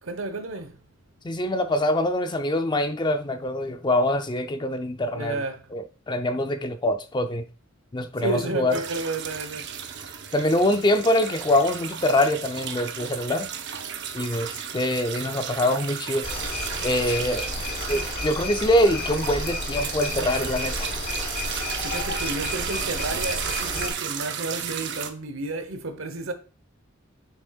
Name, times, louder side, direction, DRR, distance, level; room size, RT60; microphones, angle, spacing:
voice 1, 0.0-0.8 5.1-5.6 8.2-9.7 21.8-26.3, right 2 dB, 75° right, 1.0 m, -31 dB
voice 2, 1.2-5.4 5.7-7.5 7.9-8.8 10.3-13.5 14.1-16.3 16.8-17.5 17.9-20.9, left 1 dB, 20° left, 0.5 m, -24 dB
sound 1, 8.7-25.1, right 8 dB, 60° right, 0.8 m, -34 dB
sound 2, 16.2-23.9, left 3 dB, 50° left, 1.1 m, -32 dB
7.1 x 6.4 x 2.4 m
head